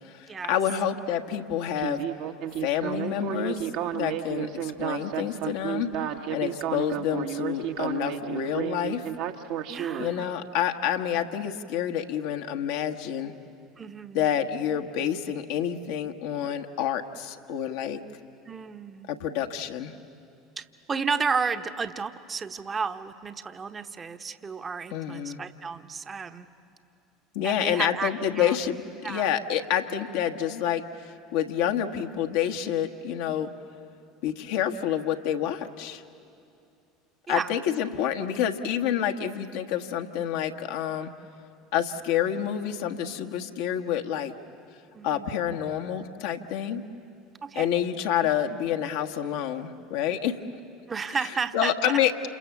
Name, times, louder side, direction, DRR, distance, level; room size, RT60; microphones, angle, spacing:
voice 1, 0.1-2.0 2.6-3.7 3.9-5.9 6.3-9.0 10.0-13.3 14.1-18.0 19.1-19.9 24.9-25.4 27.3-30.8 31.3-33.5 34.2-36.0 37.3-41.1 41.7-44.3 45.0-46.8 47.5-50.4 51.5-52.1, left 9 dB, 65° left, 6 dB, 1.4 m, -28 dB
Speech synthesizer, 1.8-10.1, right 10 dB, 60° right, 1.4 m, -31 dB
voice 2, 9.7-10.3 13.8-14.3 18.5-19.1 20.6-26.5 27.4-28.6 29.0-29.3 37.3-37.5 44.9-45.3 47.4-47.7 50.9-52.0, right 5 dB, 25° right, 9 dB, 1.1 m, -32 dB
28.5 x 28.0 x 7.2 m, 2.6 s
figure-of-eight pair, 70°, 0 cm